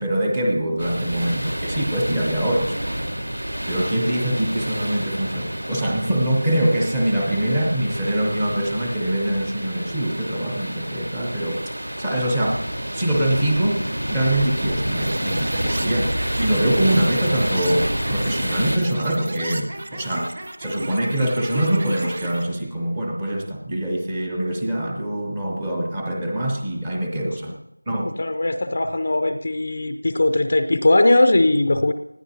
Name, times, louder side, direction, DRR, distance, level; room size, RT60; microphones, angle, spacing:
voice 1, 0.0-3.1 3.7-12.6 12.9-27.6 27.9-28.1, right 1 dB, 5° right, 1 dB, 0.7 m, -24 dB
sound 1, 0.8-18.8, equal, 75° right, 3.7 m, -28 dB
sound 2, 15.0-22.4, right 1 dB, 25° right, 1.1 m, -33 dB
voice 2, 28.0-31.9, left 2 dB, 25° left, 8 dB, 0.5 m, -19 dB
20.0 x 14.0 x 2.8 m, 0.88 s
figure-of-eight pair, 175°, 0 cm